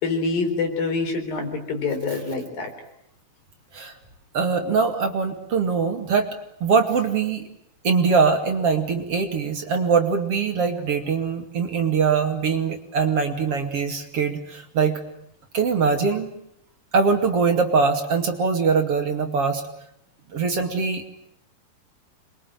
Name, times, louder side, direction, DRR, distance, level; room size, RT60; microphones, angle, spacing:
voice 1, 0.0-2.7, left 4 dB, 80° left, 4 dB, 6.2 m, -26 dB
voice 2, 4.3-6.3 6.6-7.5 7.8-15.0 15.5-16.3 16.9-19.6 20.3-21.3, right 5 dB, 45° right, 4 dB, 3.1 m, -22 dB
26.5 x 23.0 x 9.1 m, 0.75 s
omnidirectional pair, 4.0 m